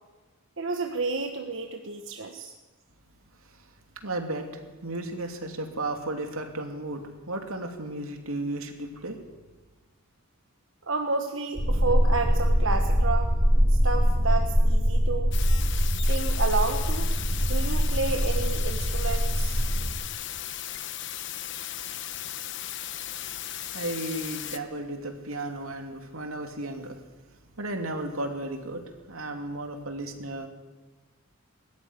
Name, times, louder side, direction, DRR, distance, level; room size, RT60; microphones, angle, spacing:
voice 1, 0.6-2.5 10.8-13.3 13.7-15.3 16.1-17.1 17.4-19.6, right 3 dB, 65° right, 4 dB, 1.4 m, -30 dB
voice 2, 4.0-4.5 4.8-9.2 23.6-27.0 27.6-30.5, right 2 dB, 85° right, 4 dB, 2.9 m, -34 dB
sound 1, 11.5-19.9, equal, 40° right, 5.7 m, -23 dB
sound 2, 15.3-24.6, left 12 dB, 55° left, 1.1 m, -36 dB
20.5 x 13.5 x 10.0 m, 1.3 s
head